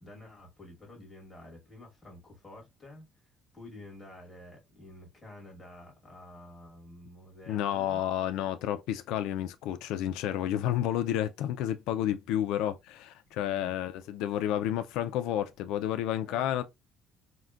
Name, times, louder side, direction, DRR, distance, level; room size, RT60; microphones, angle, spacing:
voice 1, 0.0-8.0 16.3-16.5, left 1 dB, 10° left, 1.2 m, -50 dB
voice 2, 7.5-16.6, left 11 dB, 85° left, 0.3 m, -31 dB
3.7 x 2.1 x 2.3 m
cardioid pair, 165°, 0 cm